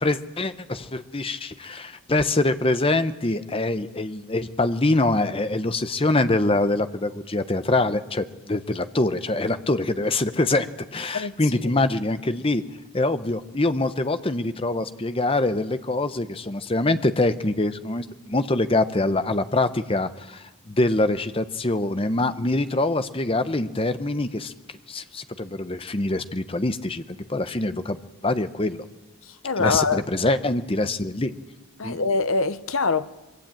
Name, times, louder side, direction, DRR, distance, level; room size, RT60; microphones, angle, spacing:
voice 1, 0.0-10.7 10.9-12.6 12.9-24.5 24.9-27.0 27.3-28.8 29.6-31.3 31.8-32.0, left 2 dB, 25° left, 0.9 m, -24 dB
voice 2, 29.4-30.0 31.8-33.2, left 4 dB, 65° left, 0.9 m, -23 dB
23.0 x 23.0 x 8.9 m
head